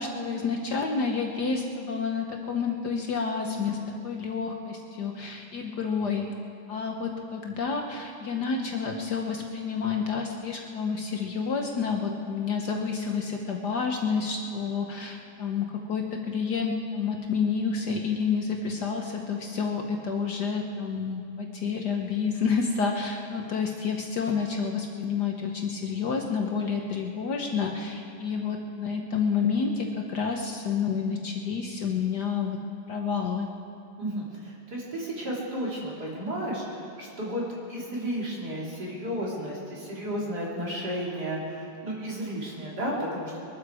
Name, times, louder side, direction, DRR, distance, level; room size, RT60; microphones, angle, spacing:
voice 1, 0.0-6.3 6.7-32.6 32.9-33.5, left 5 dB, 60° left, 2 dB, 1.4 m, -29 dB
voice 2, 34.0-37.4 37.7-43.4, equal, 50° right, -5 dB, 4.0 m, -33 dB
22.5 x 13.0 x 4.8 m, 2.6 s
omnidirectional pair, 2.3 m